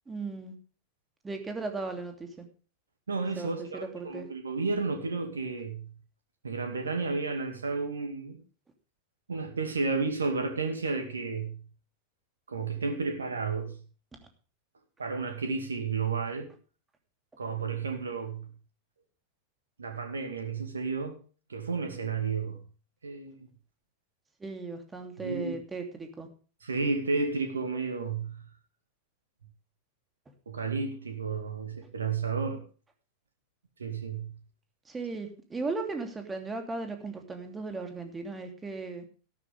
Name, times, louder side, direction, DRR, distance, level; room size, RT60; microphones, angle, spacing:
voice 1, 0.1-0.5 1.2-2.4 3.4-4.3 24.4-26.3 34.9-39.0, right 3 dB, 15° right, 2.9 m, -37 dB
voice 2, 3.1-5.9 6.4-8.4 9.3-11.6 12.5-13.8 15.0-16.5 17.4-18.5 19.8-21.1 21.5-22.6 23.0-23.5 25.2-25.6 26.6-28.4 30.5-32.6 33.8-34.3, right 4 dB, 70° right, 2.1 m, -32 dB
13.5 x 12.0 x 3.5 m
figure-of-eight pair, 90°, 0 cm